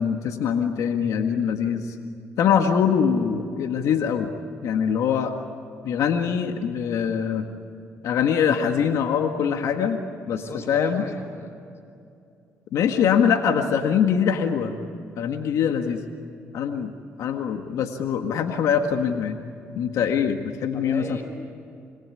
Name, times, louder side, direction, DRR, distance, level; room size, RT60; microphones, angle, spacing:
voice 1, 0.0-1.9 2.4-4.3 4.6-5.3 5.8-7.5 8.0-10.4 10.7-11.0 12.7-14.7 15.2-16.0 16.5-16.9 17.2-19.4 19.8-21.2, left 7 dB, 75° left, 5 dB, 1.8 m, -23 dB
voice 2, 10.3-11.7 20.7-21.2, left 3 dB, 50° left, 6 dB, 5.1 m, -37 dB
27.5 x 20.5 x 9.9 m, 2.6 s
supercardioid pair, 70°, 6 cm